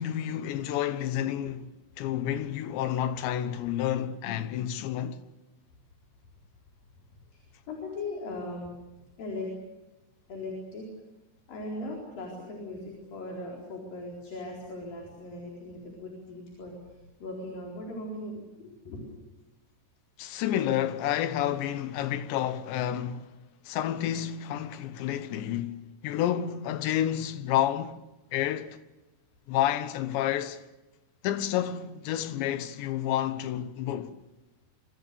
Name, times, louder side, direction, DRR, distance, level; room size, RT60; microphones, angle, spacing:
voice 1, 0.0-1.7 2.0-5.2 20.2-23.3 23.7-25.8 26.0-28.0 28.3-28.8 29.5-30.6 31.2-34.1, left 11 dB, 75° left, 3.2 m, -30 dB
voice 2, 7.1-8.7 9.2-9.5 10.3-10.9 11.5-16.7 17.2-19.1, left 2 dB, 45° left, 5.8 m, -39 dB
26.5 x 25.5 x 6.9 m
omnidirectional pair, 5.6 m